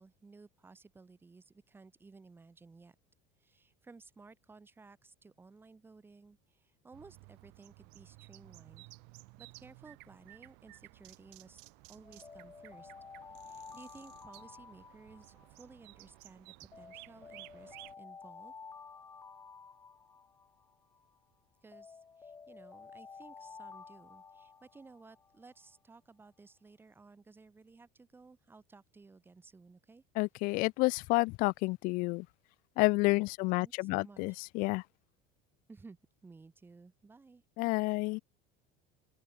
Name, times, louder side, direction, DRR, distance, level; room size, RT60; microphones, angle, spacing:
voice 1, 0.0-2.9 3.4-8.8 9.4-11.6 11.9-12.9 13.4-18.5 21.6-30.0 33.6-34.4 35.7-37.4, right 4 dB, 10° right, 7.0 m, -57 dB
sound 1, 6.9-17.9, right 33 dB, 55° right, 3.6 m, -56 dB
Alarm, 12.0-16.2 16.7-21.2 21.7-25.5, left 5 dB, 15° left, 6.3 m, -52 dB
voice 2, 30.2-32.2 32.8-34.8 37.6-38.2, left 24 dB, 40° left, 0.5 m, -30 dB
open air
cardioid pair, 180°, 21 cm